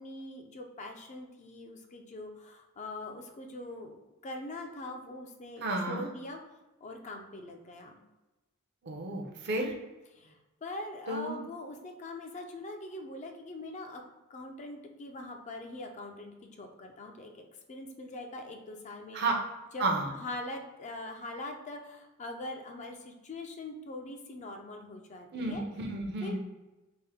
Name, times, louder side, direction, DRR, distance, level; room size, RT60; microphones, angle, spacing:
voice 1, 0.0-6.4 6.8-8.0 10.1-14.0 14.3-17.4 17.7-19.2 19.7-19.9 20.1-25.6 26.2-26.4, left 2 dB, 35° left, 3 dB, 0.4 m, -42 dB
voice 2, 5.6-6.1 8.8-9.7 11.1-11.4 19.1-19.3 19.8-20.1 25.3-26.4, right 2 dB, 50° right, 2 dB, 0.6 m, -32 dB
3.5 x 2.6 x 3.4 m, 1.1 s
head